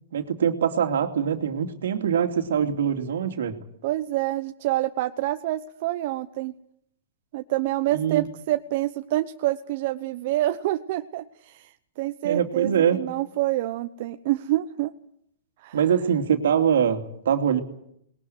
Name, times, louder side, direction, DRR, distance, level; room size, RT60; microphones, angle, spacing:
voice 1, 0.1-3.6 7.9-8.2 12.2-13.0 15.7-17.6, right 8 dB, 80° right, 6 dB, 2.7 m, -23 dB
voice 2, 3.8-6.5 7.3-14.9 15.6-15.8, right 15 dB, 55° right, 8 dB, 0.9 m, -27 dB
20.5 x 18.5 x 9.5 m, 0.73 s
hypercardioid pair, 140°, 0 cm